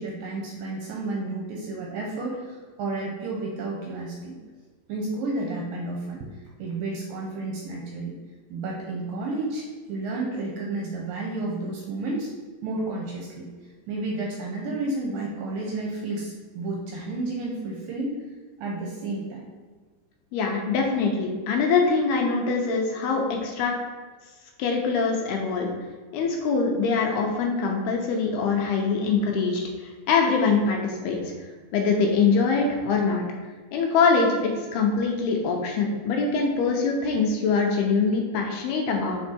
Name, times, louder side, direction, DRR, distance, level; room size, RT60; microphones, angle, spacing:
voice 1, 0.0-4.4 4.9-6.3 6.6-8.1 8.5-12.3 12.6-13.5 13.9-18.2 18.6-19.5 22.4-22.5, right 2 dB, 70° right, -2 dB, 2.2 m, -31 dB
voice 2, 20.3-23.7 24.6-25.7 26.1-31.2 31.7-33.3 33.7-39.2, left 4 dB, 80° left, 1 dB, 2.7 m, -23 dB
7.2 x 4.4 x 4.4 m, 1.4 s
omnidirectional pair, 4.8 m